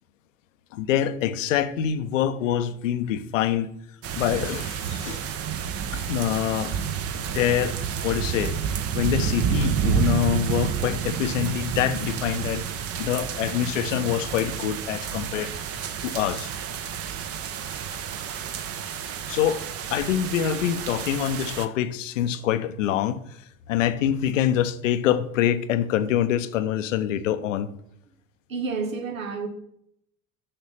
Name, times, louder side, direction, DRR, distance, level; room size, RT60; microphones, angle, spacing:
voice 1, 0.7-3.7 4.2-5.2 5.9-6.7 7.3-7.8 8.0-8.6 8.9-12.7 13.0-15.5 16.0-16.5 19.3-19.6 19.9-27.7, left 10 dB, 70° left, 0.7 m, -25 dB
sound 1, 4.0-21.7, right 8 dB, 35° right, 0.8 m, -29 dB
voice 2, 28.5-29.5, right 4 dB, 80° right, 1.2 m, -29 dB
6.6 x 5.9 x 5.6 m
figure-of-eight pair, 65°, 40 cm